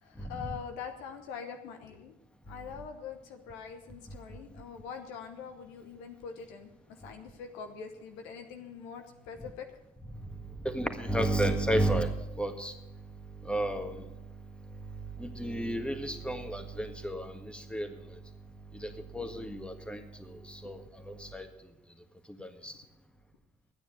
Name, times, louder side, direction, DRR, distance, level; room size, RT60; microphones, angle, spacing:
voice 1, 0.0-2.1 2.5-9.7 20.6-20.7, left 6 dB, 75° left, 6 dB, 1.1 m, -44 dB
voice 2, 10.6-12.7 13.5-13.9 15.2-17.9 18.7-20.8 21.1-21.5 22.4-22.7, right 1 dB, 5° left, 7 dB, 1.7 m, -32 dB
13.0 x 9.4 x 6.8 m, 1.0 s
hypercardioid pair, 45°, 19 cm